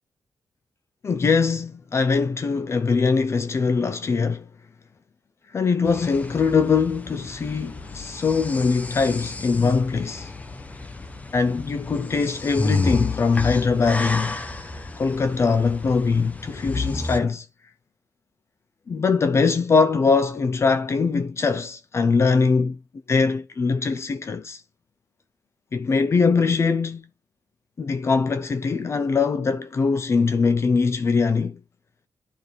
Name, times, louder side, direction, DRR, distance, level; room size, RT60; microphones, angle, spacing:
voice 1, 1.0-4.5 5.5-10.3 11.3-14.4 15.0-17.5 18.9-22.8 23.1-24.6 25.7-27.1 27.8-31.6, left 4 dB, 40° left, 0.7 m, -22 dB
sound 1, 5.8-17.2, left 3 dB, 20° left, 1.0 m, -31 dB
11.0 x 5.0 x 4.2 m
wide cardioid pair, 155°, 7 cm